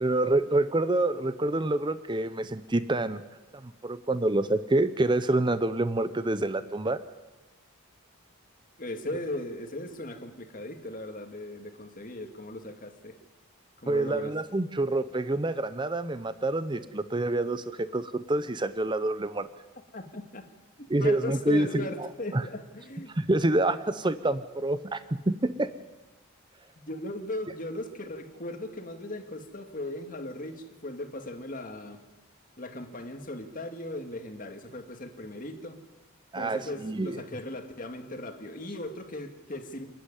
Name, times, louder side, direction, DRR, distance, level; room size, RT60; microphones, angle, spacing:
voice 1, 0.0-3.2 3.5-7.0 13.9-19.5 20.9-22.1 22.3-22.4 23.1-25.7 36.3-37.2, right 2 dB, 20° right, 13 dB, 0.6 m, -27 dB
voice 2, 8.8-13.1 13.8-14.4 19.9-20.4 21.0-23.1 26.8-32.0 32.6-35.8 36.4-39.8, left 1 dB, 40° left, 5 dB, 2.0 m, -38 dB
28.0 x 10.0 x 9.9 m, 1.2 s
head